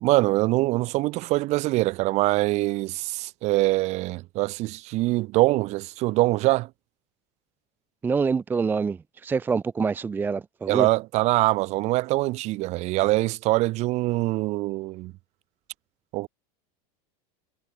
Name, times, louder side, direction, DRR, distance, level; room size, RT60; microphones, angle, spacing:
voice 1, 0.0-6.7 10.7-15.1 16.1-16.3, right 20 dB, 35° right, 2.0 m, -24 dB
voice 2, 8.0-10.9, right 5 dB, 10° right, 0.7 m, -26 dB
supercardioid pair, 180°, 20 cm